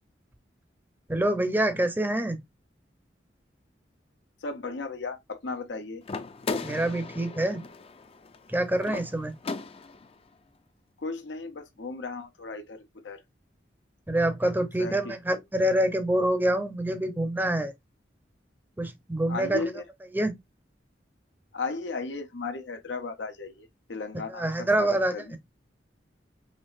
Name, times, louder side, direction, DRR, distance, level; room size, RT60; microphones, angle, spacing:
voice 1, 1.1-2.4 6.6-7.7 8.5-9.3 14.1-17.7 18.8-19.6 20.1-20.4 24.3-25.1, right 1 dB, 10° right, 0.6 m, -26 dB
voice 2, 4.4-6.0 11.0-13.2 14.8-15.0 19.3-19.8 21.5-25.3, left 4 dB, 90° left, 0.8 m, -35 dB
sound 1, 6.0-10.2, left 4 dB, 35° left, 0.5 m, -37 dB
5.4 x 3.0 x 2.5 m
head